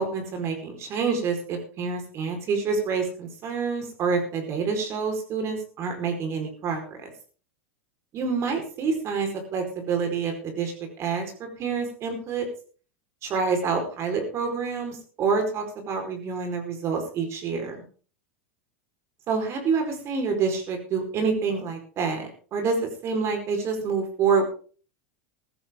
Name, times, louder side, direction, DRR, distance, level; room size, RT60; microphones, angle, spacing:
voice 1, 0.0-7.1 8.1-12.5 13.2-17.8 19.3-24.5, right 5 dB, 40° right, 4 dB, 4.9 m, -27 dB
15.0 x 13.5 x 3.9 m, 0.41 s
hypercardioid pair, 100°, 7 cm